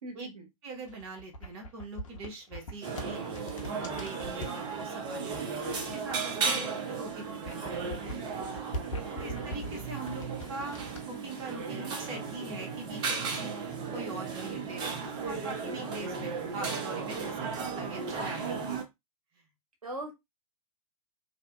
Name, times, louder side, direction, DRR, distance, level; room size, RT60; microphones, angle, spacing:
voice 1, 0.0-0.4 9.2-9.6 19.8-20.1, right 1 dB, 75° right, 4 dB, 0.8 m, -41 dB
voice 2, 0.6-8.3 9.1-13.5 13.9-18.8 19.4-19.5, right 2 dB, 45° right, 2 dB, 0.9 m, -42 dB
sound 1, 0.7-4.6 5.3-6.6 6.9-11.0, equal, 60° left, 0.7 m, -42 dB
sound 2, 2.8-18.8, right 5 dB, 25° right, 0.6 m, -35 dB
2.6 x 2.1 x 2.3 m, 0.20 s
figure-of-eight pair, 100°, 19 cm